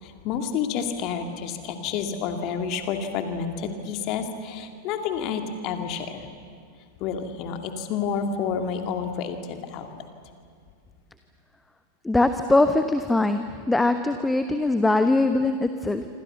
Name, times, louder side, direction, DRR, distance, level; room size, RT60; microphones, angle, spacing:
voice 1, 0.0-6.3 7.0-9.9, left 6 dB, 40° left, 6 dB, 2.6 m, -29 dB
voice 2, 12.0-16.1, left 2 dB, 5° left, 9 dB, 1.1 m, -22 dB
27.5 x 26.0 x 7.0 m, 2.3 s
figure-of-eight pair, 90°, 0 cm